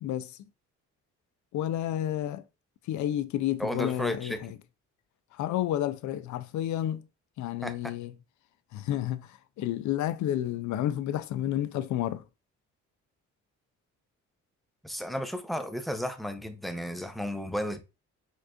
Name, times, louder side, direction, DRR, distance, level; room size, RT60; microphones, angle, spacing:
voice 1, 0.0-0.3 1.5-2.4 2.9-4.5 5.4-7.0 7.4-8.1 8.7-9.3 9.6-12.2, left 12 dB, 70° left, 0.5 m, -30 dB
voice 2, 3.6-4.6 7.6-7.9 14.8-17.8, equal, ahead, 0.4 m, -33 dB
4.4 x 3.0 x 2.3 m
cardioid pair, 90°, 30 cm